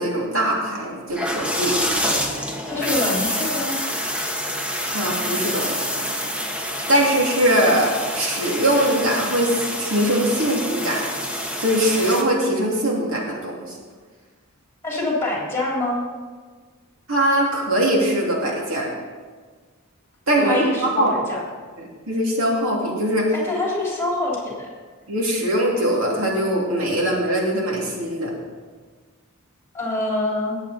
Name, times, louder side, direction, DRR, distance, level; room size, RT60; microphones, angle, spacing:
voice 1, 0.0-1.8 4.9-6.0 6.9-11.0 11.6-13.8 17.1-18.9 20.3-21.1 21.8-23.3 25.1-28.3, right 1 dB, 65° right, -2 dB, 2.8 m, -21 dB
sound 1, 1.1-12.2, equal, 5° right, 1.0 m, -27 dB
voice 2, 2.7-3.8 14.8-16.0 20.4-21.4 23.3-24.7 29.7-30.6, left 2 dB, 10° left, -4 dB, 3.4 m, -25 dB
19.5 x 8.0 x 4.3 m, 1.5 s
head